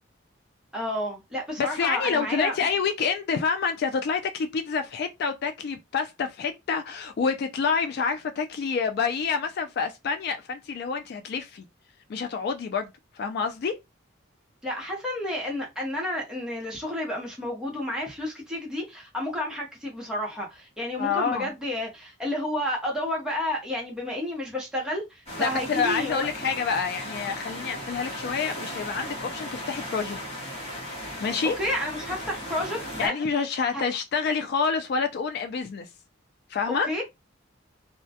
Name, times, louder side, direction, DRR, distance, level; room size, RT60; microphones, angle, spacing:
voice 1, 0.7-2.6 14.6-26.3 31.4-33.1 33.7-33.8 36.7-37.0, left 1 dB, 5° right, 0.8 m, -31 dB
voice 2, 1.6-11.6 12.1-13.8 21.0-21.5 25.4-30.2 31.2-31.6 33.0-35.9 36.5-36.9, left 5 dB, 55° left, 0.3 m, -28 dB
sound 1, 25.3-33.1, equal, 30° left, 0.9 m, -37 dB
2.2 x 2.1 x 2.7 m
head